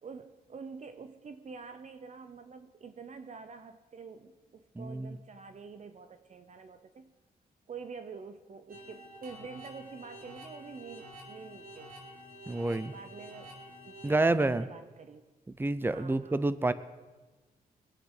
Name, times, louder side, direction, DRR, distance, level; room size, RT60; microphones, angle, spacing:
voice 1, 0.0-7.1 7.7-11.9 12.7-13.5 13.8-15.2 15.9-16.5, right 5 dB, 45° right, 10 dB, 0.8 m, -47 dB
voice 2, 4.8-5.2 12.5-12.9 14.0-14.7 15.6-16.7, right 2 dB, 15° right, 15 dB, 0.7 m, -28 dB
sound 1, 8.7-14.5, equal, 60° right, 4.2 m, -49 dB
23.0 x 8.8 x 5.0 m, 1.2 s
cardioid pair, 95°, 16 cm